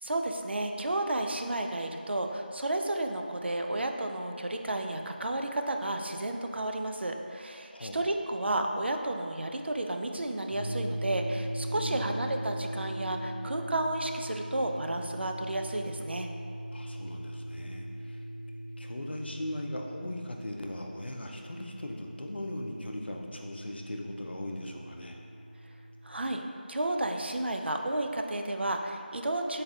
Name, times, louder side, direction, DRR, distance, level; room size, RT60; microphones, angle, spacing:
voice 1, 0.0-16.3 26.0-29.6, right 1 dB, 85° right, 4 dB, 0.4 m, -32 dB
voice 2, 7.7-8.2 11.7-12.2 16.7-18.2 18.8-25.2, left 1 dB, 75° left, 1 dB, 0.5 m, -39 dB
sound 1, 10.5-26.3, right 1 dB, 30° left, 0.8 m, -40 dB
4.0 x 3.9 x 2.4 m, 2.6 s
figure-of-eight pair, 175°, 6 cm